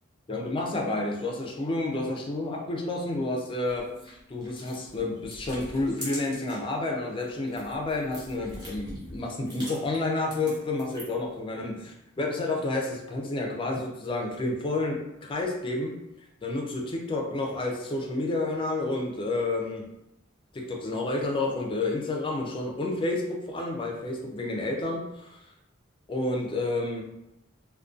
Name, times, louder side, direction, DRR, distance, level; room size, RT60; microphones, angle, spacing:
voice 1, 0.3-16.0 16.4-19.8 20.5-25.4 26.1-27.0, left 2 dB, 25° left, 0 dB, 0.4 m, -30 dB
sound 1, 3.6-6.7 7.1-11.3, equal, 20° right, 0.8 m, -44 dB
2.5 x 2.1 x 2.4 m, 0.87 s
head